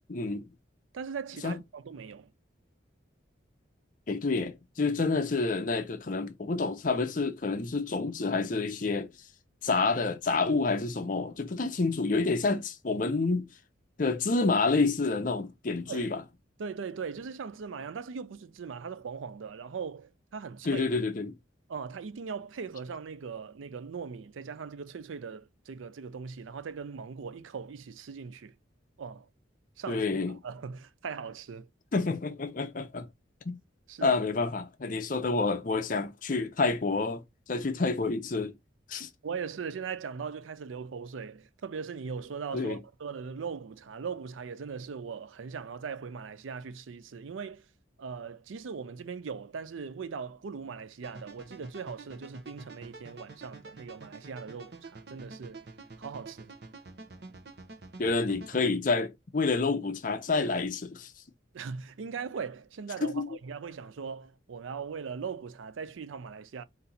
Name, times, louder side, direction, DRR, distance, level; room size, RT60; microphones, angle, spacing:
voice 1, 0.1-0.5 1.4-1.6 4.1-9.1 9.6-13.5 14.0-16.2 20.6-21.3 29.9-30.3 31.9-33.1 33.5-33.6 34.0-37.2 37.5-38.5 38.9-39.1 42.5-42.8 58.0-61.1 63.0-63.3, left 3 dB, 45° left, 0.5 m, -28 dB
voice 2, 0.9-2.3 15.9-16.1 16.6-20.9 21.7-28.5 29.0-29.3 29.8-31.7 33.9-34.2 39.2-47.6 48.0-55.7 56.0-56.5 61.5-66.6, right 6 dB, 90° right, 0.5 m, -39 dB
sound 1, 51.0-58.7, right 3 dB, 55° right, 0.8 m, -48 dB
4.2 x 2.6 x 3.9 m
head